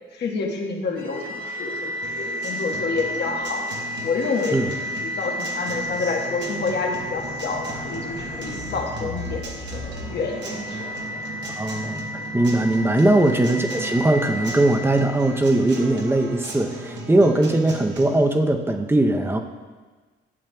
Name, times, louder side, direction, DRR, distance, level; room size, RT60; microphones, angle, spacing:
voice 1, 0.1-3.6 4.0-4.6 5.0-9.8 10.1-10.8 13.0-13.1, left 4 dB, 60° left, 1 dB, 1.3 m, -28 dB
sound 1, 0.9-16.1, left 1 dB, 80° left, 2.4 m, -32 dB
Acoustic guitar, 2.0-18.0, right 3 dB, 65° right, 1.3 m, -38 dB
voice 2, 11.6-12.0 12.3-19.4, right 1 dB, 10° right, 5 dB, 0.7 m, -20 dB
12.0 x 7.3 x 2.3 m, 1.4 s
cardioid pair, 90°, 20 cm